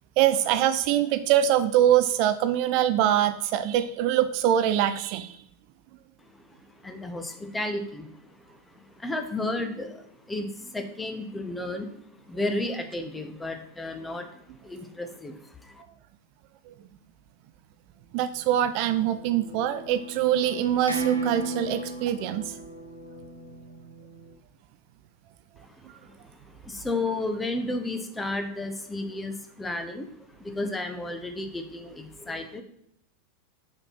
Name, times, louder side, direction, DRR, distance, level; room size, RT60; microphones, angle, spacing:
voice 1, 0.2-5.4 18.1-22.4, right 11 dB, 45° right, 11 dB, 0.4 m, -23 dB
voice 2, 6.2-15.8 25.6-32.6, left 2 dB, 10° left, 7 dB, 0.8 m, -33 dB
sound 1, 18.7-24.3, right 3 dB, 90° right, 0.9 m, -35 dB
6.7 x 4.4 x 5.7 m, 0.73 s
figure-of-eight pair, 90°, 0 cm